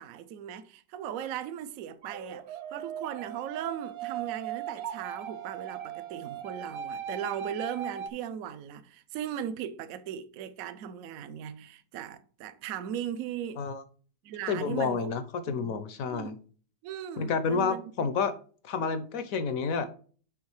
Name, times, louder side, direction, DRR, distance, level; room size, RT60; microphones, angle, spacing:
voice 1, 0.0-13.6 14.2-15.1 15.5-15.7 16.1-16.3 16.8-18.1, right 9 dB, 65° right, 0.9 m, -38 dB
sound 1, 2.0-8.1, right 9 dB, 85° right, 0.5 m, -38 dB
voice 2, 14.5-16.4 17.2-18.3 18.6-19.9, left 5 dB, 65° left, 0.9 m, -29 dB
8.3 x 3.6 x 4.8 m
omnidirectional pair, 2.0 m